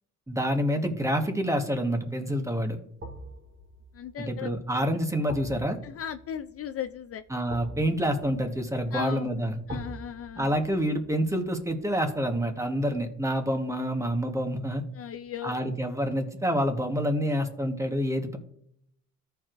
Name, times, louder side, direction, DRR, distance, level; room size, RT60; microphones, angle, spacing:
voice 1, 0.3-2.8 4.2-5.8 7.3-9.8 10.4-14.8 15.4-18.4, equal, 10° right, 5 dB, 1.3 m, -27 dB
sound 1, 1.5-1.6 3.0-14.0 14.3-14.5, right 1 dB, 40° right, 2.1 m, -47 dB
voice 2, 3.9-5.0 5.8-7.2 8.9-9.3 9.7-10.6 14.9-15.5, left 9 dB, 50° left, 9 dB, 0.5 m, -37 dB
14.0 x 4.7 x 2.6 m, 0.72 s
cardioid pair, 90°, 30 cm